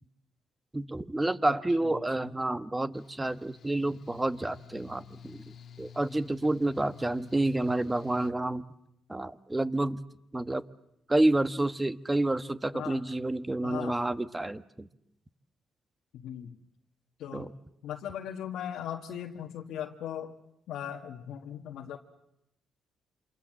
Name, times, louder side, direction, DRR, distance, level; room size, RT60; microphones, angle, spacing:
voice 1, 0.7-8.6 9.1-10.0 10.3-10.6 11.1-14.9 17.3-17.5, right 2 dB, 15° right, 12 dB, 1.2 m, -29 dB
Mechanical fan, 2.9-8.3, left 7 dB, 55° left, 1.5 m, -51 dB
voice 2, 13.6-14.0 16.1-16.6 17.2-17.6 17.8-20.3 20.7-22.0, left 9 dB, 80° left, 0 dB, 1.6 m, -38 dB
27.5 x 26.5 x 7.6 m, 0.82 s
cardioid pair, 90°, 0 cm